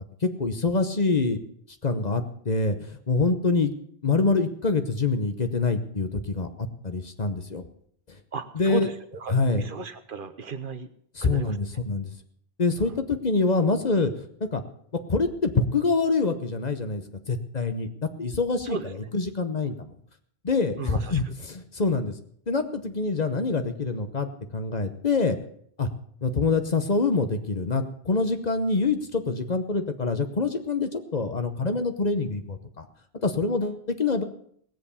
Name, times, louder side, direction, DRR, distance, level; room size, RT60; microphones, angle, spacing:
voice 1, 0.2-1.4 1.8-3.7 4.0-7.6 8.1-8.2 8.5-8.9 9.3-9.7 11.1-12.1 12.6-14.6 15.1-19.9 20.4-22.1 22.5-24.3 24.5-25.4 25.8-25.9 26.2-32.8 33.2-34.2, left 3 dB, 45° left, 8 dB, 1.1 m, -25 dB
voice 2, 8.3-10.9 11.2-11.6 18.7-18.9 20.8-21.2, right 4 dB, 55° right, 10 dB, 1.0 m, -34 dB
17.5 x 7.8 x 6.9 m, 0.65 s
omnidirectional pair, 1.1 m